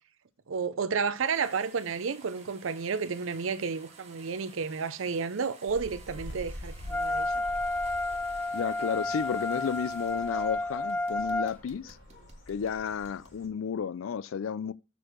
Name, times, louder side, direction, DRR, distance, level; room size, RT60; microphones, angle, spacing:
voice 1, 0.5-7.3, right 5 dB, 75° right, 0.5 m, -31 dB
sound 1, 1.2-10.6 10.9-13.4, right 5 dB, 35° right, 1.5 m, -54 dB
sound 2, 5.7-13.5, equal, 60° left, 3.6 m, -46 dB
Wind instrument woodwind instrument, 6.9-11.5, left 2 dB, 10° left, 0.3 m, -31 dB
voice 2, 8.5-12.0 12.5-14.7, left 7 dB, 80° left, 0.4 m, -32 dB
7.0 x 4.5 x 6.1 m
head